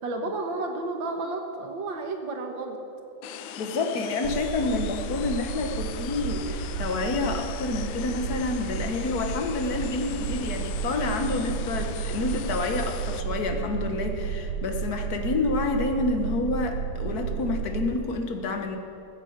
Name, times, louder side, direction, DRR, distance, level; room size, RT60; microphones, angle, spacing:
voice 1, 0.0-2.8, right 2 dB, 65° right, 4 dB, 2.0 m, -32 dB
sound 1, 3.2-13.2, left 10 dB, 75° left, 1.4 m, -40 dB
voice 2, 3.6-18.8, left 3 dB, 50° left, 5 dB, 1.6 m, -28 dB
sound 2, 4.2-17.9, right 7 dB, 90° right, 2.1 m, -32 dB
16.0 x 8.1 x 8.0 m, 2.7 s
omnidirectional pair, 2.3 m